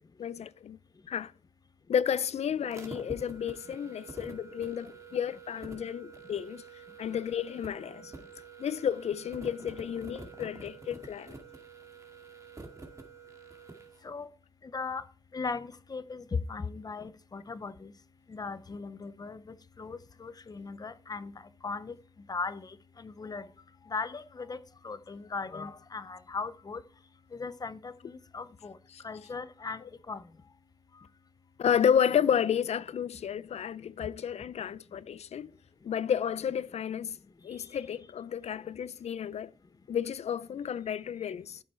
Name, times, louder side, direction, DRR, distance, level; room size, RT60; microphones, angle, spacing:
voice 1, 0.2-0.8 1.1-1.3 1.9-6.6 7.0-8.1 8.6-11.4 28.9-29.0 31.6-35.5 35.8-37.2 37.4-39.5 39.9-41.6, left 8 dB, 80° left, 0.5 m, -31 dB
sound 1, 2.6-14.0, right 4 dB, 30° right, 2.0 m, -48 dB
voice 2, 14.7-15.0 15.3-17.9 18.3-21.3 21.6-21.9 22.3-23.5 23.9-24.6 24.8-26.8 27.3-28.7 29.0-29.8 30.1-30.2, left 4 dB, 35° left, 0.7 m, -38 dB
12.5 x 6.9 x 4.4 m
wide cardioid pair, 110°, 11 cm